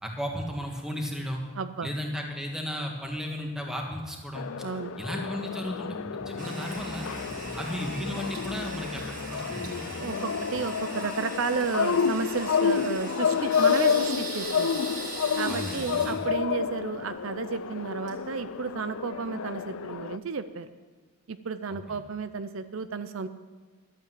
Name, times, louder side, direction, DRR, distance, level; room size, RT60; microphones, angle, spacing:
voice 1, 0.0-1.4 1.8-4.7 5.0-7.1 7.6-9.9 15.5-16.3 21.7-22.0, equal, 5° right, 1 dB, 1.7 m, -35 dB
voice 2, 1.6-1.9 4.6-4.9 10.0-14.8 15.4-20.7 21.3-23.3, right 5 dB, 70° right, 11 dB, 0.5 m, -32 dB
sound 1, 4.3-20.2, left 7 dB, 75° left, 0.4 m, -30 dB
sound 2, 5.7-10.8, left 1 dB, 25° left, 1.7 m, -43 dB
Toilet flush, 6.4-19.0, right 2 dB, 35° right, 2.4 m, -41 dB
12.0 x 8.7 x 7.6 m, 1.4 s
head